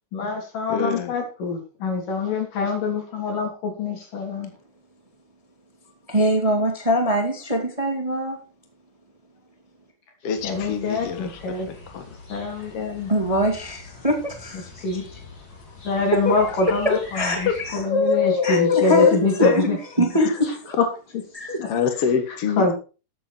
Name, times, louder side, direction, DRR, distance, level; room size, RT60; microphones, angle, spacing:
voice 1, 0.1-4.5 10.4-11.7 12.3-13.4 14.8-15.2 15.9-19.8 20.8-20.9 21.1-21.2 21.6-21.7 22.3-22.7, left 3 dB, 80° left, 2 dB, 5.1 m, -25 dB
voice 2, 0.7-1.1 10.2-12.0 16.9-17.0 17.5-17.6 17.9-19.1 19.4-19.5 20.2-20.3 21.6-22.7, left 6 dB, 55° left, 7 dB, 2.2 m, -23 dB
voice 3, 6.1-8.4 12.6-12.7 13.1-14.8 16.1-16.3 16.8-17.8 18.4-20.5 21.3-21.6, equal, 15° right, 3 dB, 1.7 m, -23 dB
sound 1, 10.4-17.8, left 3 dB, 35° left, 3.1 m, -43 dB
13.5 x 8.9 x 4.5 m, 0.34 s
omnidirectional pair, 3.7 m